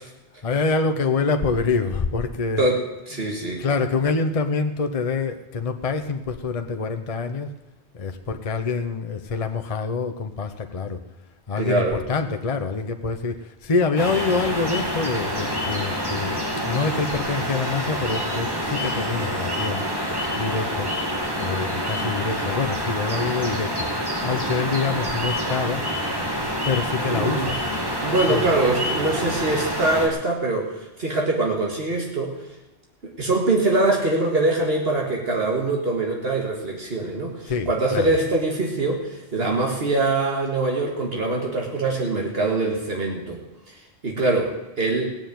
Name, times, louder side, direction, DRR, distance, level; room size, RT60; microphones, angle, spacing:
voice 1, 0.4-2.8 3.1-3.3 3.6-7.5 7.9-11.0 11.5-16.4 16.6-19.9 20.4-20.9 21.4-23.9 24.2-25.8 26.6-27.6 28.3-28.5 37.5-38.1, left 4 dB, 35° left, 7 dB, 0.8 m, -26 dB
voice 2, 2.6-3.6 11.6-12.0 27.1-27.5 28.0-32.4 33.0-43.4 43.7-45.3, right 2 dB, 60° right, 0 dB, 2.1 m, -23 dB
sound 1, 14.0-30.1, equal, 20° right, 2.5 m, -27 dB
17.0 x 7.0 x 9.3 m, 0.99 s
omnidirectional pair, 1.1 m